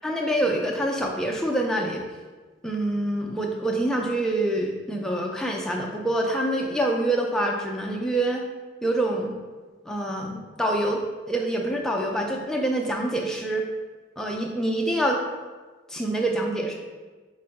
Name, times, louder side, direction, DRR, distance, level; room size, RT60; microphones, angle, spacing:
voice 1, 0.0-2.0 2.6-8.4 8.8-9.3 9.9-13.7 14.2-15.2 15.9-16.7, right 1 dB, 5° left, -1 dB, 0.3 m, -26 dB
4.5 x 2.1 x 3.9 m, 1.3 s
head